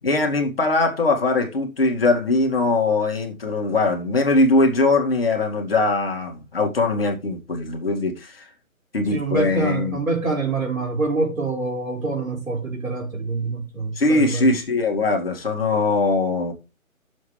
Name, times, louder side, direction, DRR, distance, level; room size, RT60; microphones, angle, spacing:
voice 1, 0.0-8.4 8.9-10.0 13.9-16.5, left 2 dB, 45° left, 2.1 m, -21 dB
voice 2, 9.1-14.5, right 3 dB, 75° right, 4.5 m, -25 dB
11.0 x 7.2 x 3.3 m
hypercardioid pair, 170°, 41 cm